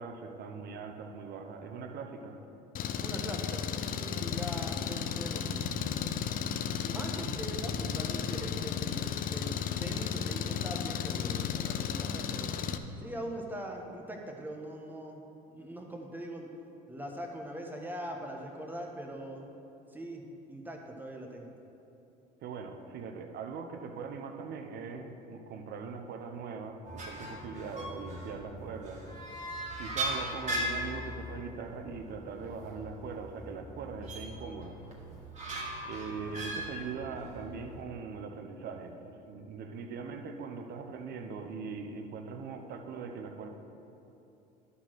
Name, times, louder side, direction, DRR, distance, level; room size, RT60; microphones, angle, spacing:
voice 1, 0.0-2.4 22.4-29.0 29.8-34.8 35.8-43.5, right 5 dB, 55° right, 5 dB, 0.9 m, -41 dB
Engine, 2.8-12.8, left 8 dB, 45° left, 0.5 m, -34 dB
voice 2, 3.0-5.9 6.8-9.5 9.8-12.5 13.0-15.2 15.5-16.5 16.9-19.5 19.9-20.2 20.5-21.5, right 1 dB, 10° right, 1 dB, 1.3 m, -41 dB
sound 1, 26.9-37.8, right 1 dB, 35° right, 2.0 m, -39 dB
11.0 x 4.2 x 6.3 m, 2.9 s
supercardioid pair, 90°, 20 cm